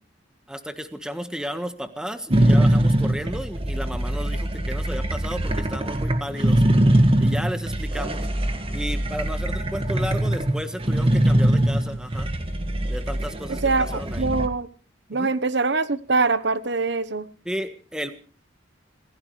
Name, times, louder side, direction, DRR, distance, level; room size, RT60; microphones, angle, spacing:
voice 1, 0.5-6.6 7.2-8.3 8.7-12.3 12.9-13.6 13.9-14.3 15.1-15.3 17.4-18.1, equal, 5° right, 8 dB, 1.5 m, -33 dB
sound 1, 2.3-14.5, right 1 dB, 30° right, 1.7 m, -22 dB
voice 2, 13.5-14.7 15.1-17.3, right 3 dB, 65° right, 14 dB, 1.1 m, -23 dB
26.5 x 16.5 x 3.3 m, 0.39 s
head